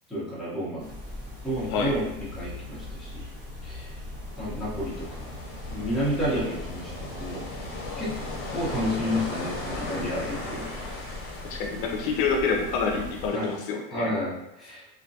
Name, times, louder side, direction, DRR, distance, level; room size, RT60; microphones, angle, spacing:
voice 1, 0.1-0.9 1.4-3.2 3.6-3.9 4.4-5.1 5.7-7.4 8.0-8.1 8.5-10.7 13.3-13.5 13.9-14.8, equal, ahead, -9 dB, 0.8 m, -30 dB
sound 1, 0.8-13.3, left 1 dB, 35° right, 1.2 m, -40 dB
sound 2, 4.2-13.6, left 3 dB, 40° left, 1.0 m, -38 dB
voice 2, 11.5-14.1, left 4 dB, 65° left, 2 dB, 0.5 m, -27 dB
2.5 x 2.1 x 2.6 m, 0.85 s
supercardioid pair, 130°, 29 cm